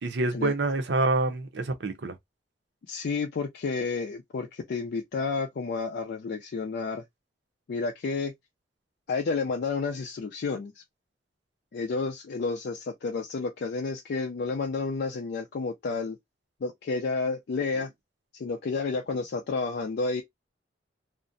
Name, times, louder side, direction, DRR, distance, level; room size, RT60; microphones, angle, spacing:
voice 1, 0.0-2.2 17.7-17.8, right 2 dB, 70° right, 0.6 m, -27 dB
voice 2, 2.9-7.0 7.7-8.3 9.1-10.8 11.7-16.2 16.6-17.9 18.3-20.2, left 4 dB, 60° left, 0.4 m, -30 dB
2.5 x 2.1 x 2.5 m
head